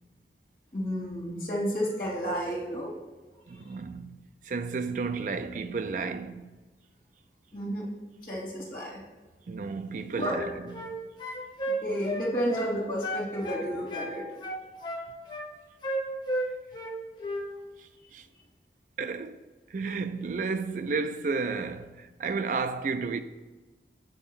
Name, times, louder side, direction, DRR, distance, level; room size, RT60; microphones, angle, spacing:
voice 1, 0.7-2.9 7.5-7.9 8.2-9.0 10.2-10.5 11.8-14.3, equal, 50° left, 2.6 m, -31 dB
voice 2, 3.5-4.2 4.4-6.5 9.5-10.7 17.8-18.3 19.0-19.4 19.7-23.2, right 4 dB, 45° right, 0.4 m, -32 dB
sound 1, 10.2-10.9 11.2-12.7 13.0-14.1 14.4-15.5 15.8-16.9 17.2-17.5, equal, 25° left, 0.8 m, -33 dB
7.7 x 3.7 x 6.2 m
head